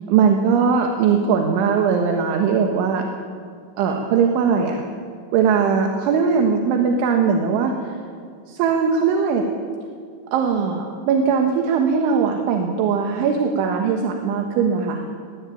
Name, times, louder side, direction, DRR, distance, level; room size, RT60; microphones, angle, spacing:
voice 1, 0.1-3.0 3.8-4.8 5.3-7.7 8.5-9.4 10.3-15.0, right 6 dB, 75° right, 3 dB, 3.7 m, -20 dB
20.5 x 17.5 x 9.2 m, 2.2 s
omnidirectional pair, 5.6 m